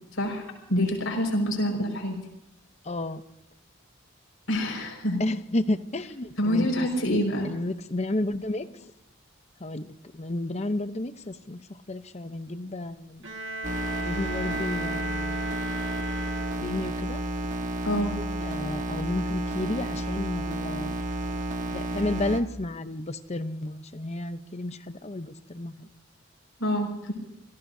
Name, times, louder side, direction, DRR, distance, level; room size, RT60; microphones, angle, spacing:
voice 1, 0.1-2.2 4.5-5.2 6.4-7.5 17.8-18.2 26.6-27.1, equal, 90° left, 2 dB, 5.4 m, -26 dB
voice 2, 2.8-3.3 5.2-7.2 7.4-8.9 9.6-13.2 14.0-15.4 16.6-17.2 18.4-20.9 21.7-25.9, left 1 dB, 35° left, 11 dB, 0.8 m, -32 dB
Bowed string instrument, 13.2-17.0, right 2 dB, 70° right, 1.7 m, -36 dB
sound 1, 13.6-22.4, right 1 dB, 40° right, 1.5 m, -31 dB
28.0 x 17.5 x 2.7 m, 0.86 s
head